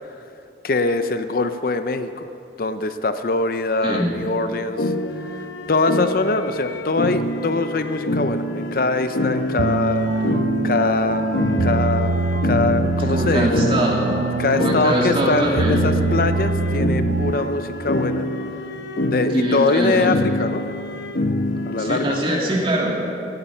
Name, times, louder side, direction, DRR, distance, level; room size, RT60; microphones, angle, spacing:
voice 1, 0.6-2.3 2.6-4.9 5.2-5.3 5.7-10.1 10.6-13.5 14.4-18.3 19.1-20.6 21.7-22.2, left 3 dB, 55° left, 10 dB, 0.6 m, -23 dB
sound 1, 4.8-22.2, left 1 dB, 90° left, 0.9 m, -26 dB
sound 2, 9.6-17.7, right 3 dB, 80° right, 0.5 m, -24 dB
voice 2, 13.0-14.1 14.5-15.8 19.3-20.1 21.6-23.0, equal, 30° right, -2 dB, 2.6 m, -22 dB
16.0 x 13.0 x 5.5 m, 2.8 s
head